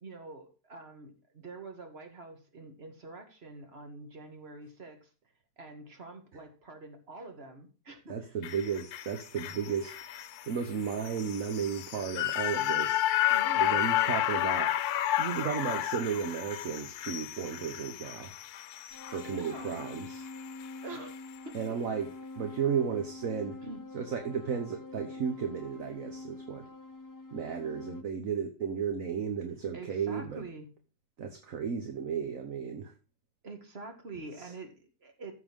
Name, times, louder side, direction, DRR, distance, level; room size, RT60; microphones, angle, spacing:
voice 1, 0.0-5.1 5.6-8.4 13.3-13.9 19.3-19.7 20.8-21.6 23.6-23.9 29.7-30.7 33.4-35.3, right 3 dB, 40° right, 5 dB, 2.2 m, -46 dB
voice 2, 8.1-9.9 10.5-13.0 13.6-14.7 15.2-18.3 19.1-20.3 21.5-22.1 22.4-23.6 23.9-26.7 27.3-30.4 31.2-32.9 34.4-34.5, right 7 dB, 60° right, 6 dB, 1.5 m, -34 dB
sound 1, 8.4-20.8 21.1-21.2, left 13 dB, 80° left, 1.1 m, -32 dB
sound 2, 18.9-28.0, left 3 dB, 30° left, 0.3 m, -45 dB
14.0 x 6.4 x 3.6 m, 0.34 s
omnidirectional pair, 1.6 m